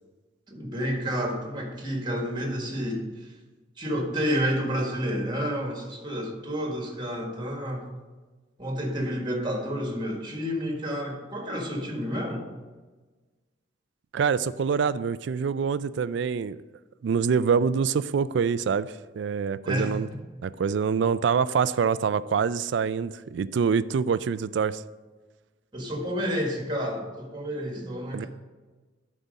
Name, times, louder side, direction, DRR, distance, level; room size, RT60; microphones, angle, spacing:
voice 1, 0.5-3.3 3.8-7.9 8.6-12.5 19.6-20.2 25.7-28.3, equal, 25° right, 1 dB, 1.5 m, -30 dB
voice 2, 14.1-16.6 17.0-20.1 20.4-24.8 28.1-28.3, right 6 dB, 65° right, 16 dB, 0.3 m, -25 dB
11.5 x 4.2 x 5.2 m, 1.3 s
head